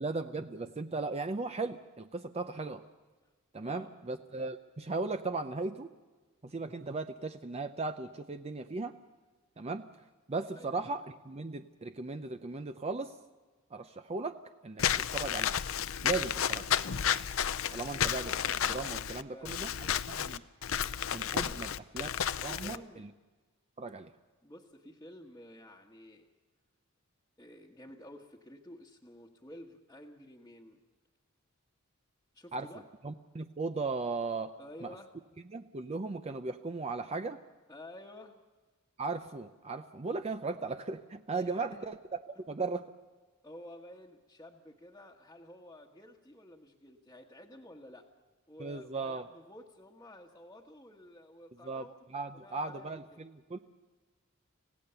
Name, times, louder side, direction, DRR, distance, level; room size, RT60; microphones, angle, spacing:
voice 1, 0.0-2.8 3.5-5.9 6.4-8.9 9.6-9.8 10.3-13.1 13.7-14.4 14.6-14.8 15.1-15.5 16.0-16.6 17.7-19.7 20.1-20.4 21.1-22.1 22.4-23.1 23.8-24.1 32.5-32.7 33.0-34.5 34.8-34.9 35.5-37.4 39.0-42.0 42.5-42.9 48.6-49.2 51.6-51.9 52.1-53.6, right 3 dB, 30° right, 8 dB, 0.6 m, -37 dB
voice 2, 3.6-3.9 10.5-10.7 19.2-20.1 21.3-21.7 22.5-23.1 24.4-26.3 27.4-30.8 32.3-32.9 34.6-35.1 37.7-38.4 41.3-41.9 43.4-48.1 48.5-52.0 52.3-53.2, left 1 dB, 15° left, -4 dB, 1.3 m, -52 dB
Walk footsteps / Squeak, 14.8-22.8, left 9 dB, 75° left, 0.6 m, -32 dB
26.0 x 16.5 x 6.9 m, 1.3 s
head